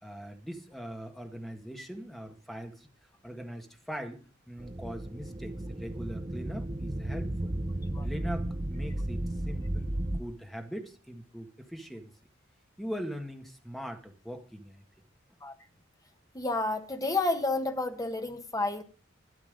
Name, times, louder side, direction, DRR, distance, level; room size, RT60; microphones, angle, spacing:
voice 1, 0.0-2.9 3.2-7.5 8.0-12.1 12.8-14.8, equal, ahead, 1.7 m, -41 dB
sound 1, 4.6-10.2, right 1 dB, 25° right, 0.7 m, -34 dB
voice 2, 16.3-18.8, left 2 dB, 20° left, 1.4 m, -30 dB
12.5 x 11.5 x 5.2 m
head